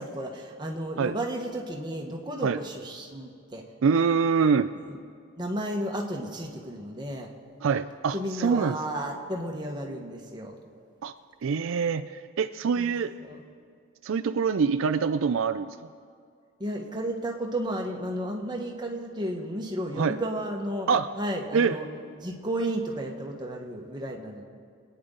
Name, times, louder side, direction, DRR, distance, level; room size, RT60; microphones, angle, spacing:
voice 1, 0.0-3.6 4.9-5.0 5.4-7.3 8.1-10.6 12.7-12.9 13.2-13.4 16.6-20.9 21.2-21.9 22.2-24.4, right 1 dB, 20° right, 0 dB, 1.3 m, -33 dB
voice 2, 3.8-4.7 7.6-8.8 11.0-11.1 11.4-13.1 14.0-15.7 20.0-20.2 20.9-21.1 21.5-21.8, right 5 dB, 70° right, 10 dB, 0.4 m, -25 dB
25.5 x 9.5 x 3.9 m, 2.3 s
head